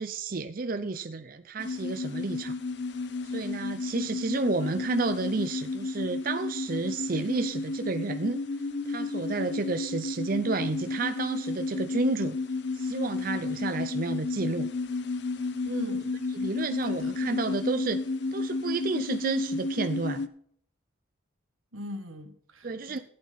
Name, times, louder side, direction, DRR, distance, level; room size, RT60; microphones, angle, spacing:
voice 1, 0.0-2.6 3.3-8.4 8.9-12.4 12.7-14.7 16.3-18.0 18.3-20.3 22.6-23.0, right 3 dB, 45° right, 0.5 m, -31 dB
sound 1, 1.6-20.3, left 3 dB, 55° left, 0.8 m, -32 dB
voice 2, 15.7-16.2 16.8-17.1 21.7-23.0, equal, 90° right, 1.8 m, -40 dB
14.5 x 8.7 x 4.1 m
head